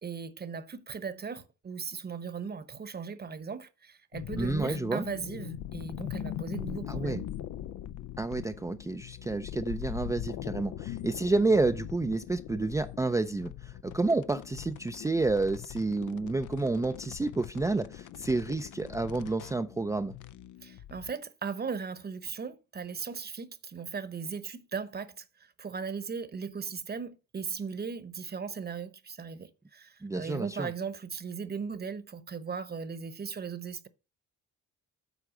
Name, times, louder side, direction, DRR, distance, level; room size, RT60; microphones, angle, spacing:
voice 1, 0.0-7.3 20.6-33.9, right 5 dB, 30° right, 1.0 m, -38 dB
sound 1, 4.1-21.1, left 11 dB, 80° left, 0.6 m, -41 dB
voice 2, 4.3-5.1 6.9-7.2 8.2-20.2 30.0-30.7, right 3 dB, 10° right, 0.4 m, -30 dB
8.2 x 4.7 x 6.0 m
cardioid pair, 90°, 30 cm